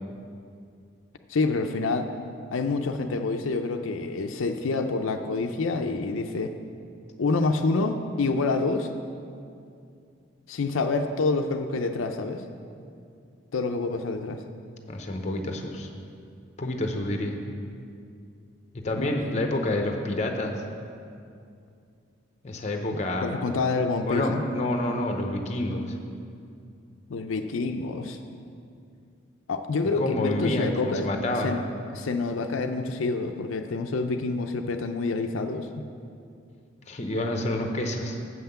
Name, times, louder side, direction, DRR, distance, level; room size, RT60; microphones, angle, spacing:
voice 1, 1.3-2.1 2.5-6.5 7.2-8.9 10.5-12.4 13.5-14.4 19.0-19.3 22.9-24.4 27.1-28.2 29.5-31.1 31.4-31.6 31.9-35.8, left 3 dB, 85° left, 5 dB, 0.5 m, -27 dB
voice 2, 14.9-15.9 16.6-17.4 18.7-20.6 22.4-23.3 24.1-25.9 30.0-31.6 36.9-38.2, left 1 dB, 35° left, 4 dB, 0.7 m, -28 dB
7.8 x 5.7 x 6.8 m, 2.4 s
head